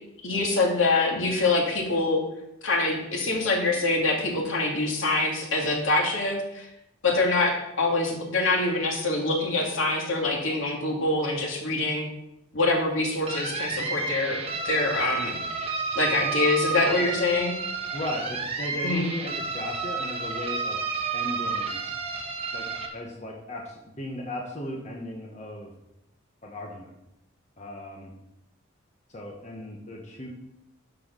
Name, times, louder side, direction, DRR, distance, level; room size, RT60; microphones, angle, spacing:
voice 1, 0.2-2.2 2.6-6.7 7.0-12.1 12.5-15.4 16.0-17.5 18.8-19.0, left 2 dB, 75° left, 0 dB, 2.3 m, -25 dB
sound 1, 13.3-22.9, right 4 dB, 30° right, 1.3 m, -31 dB
voice 2, 17.9-20.8 21.1-21.8 22.5-22.6 22.9-25.7 26.4-26.9 27.6-28.1 29.1-30.3, left 1 dB, 35° left, -1 dB, 1.3 m, -36 dB
11.5 x 4.8 x 6.2 m, 0.85 s
head